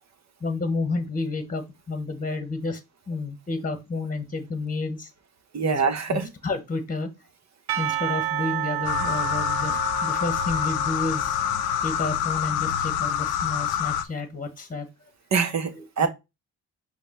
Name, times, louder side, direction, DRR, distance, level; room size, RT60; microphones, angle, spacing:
voice 1, 0.4-2.8 3.1-5.1 5.6-5.8 6.1-7.1 7.8-11.4 11.8-14.9 15.7-16.1, left 3 dB, 25° left, 1.1 m, -30 dB
voice 2, 5.5-6.3 15.3-15.7 16.0-16.1, right 6 dB, 50° right, 1.0 m, -23 dB
Percussion / Church bell, 7.7-12.1, right 12 dB, 80° right, 0.5 m, -31 dB
sound 1, 8.8-14.0, left 9 dB, 90° left, 0.5 m, -26 dB
5.1 x 2.2 x 4.3 m
supercardioid pair, 55°, 36 cm